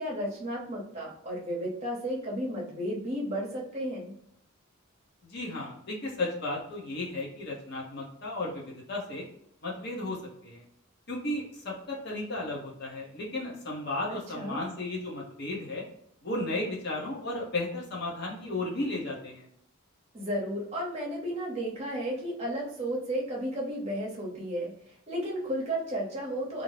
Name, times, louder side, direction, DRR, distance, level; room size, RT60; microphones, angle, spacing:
voice 1, 0.0-4.1 14.4-14.6 20.1-24.7 25.1-26.6, equal, 30° right, -4 dB, 0.8 m, -33 dB
voice 2, 5.2-9.3 9.6-10.6 11.1-15.8 16.2-19.5, left 2 dB, 50° left, -2 dB, 0.8 m, -34 dB
2.5 x 2.0 x 3.1 m, 0.71 s
head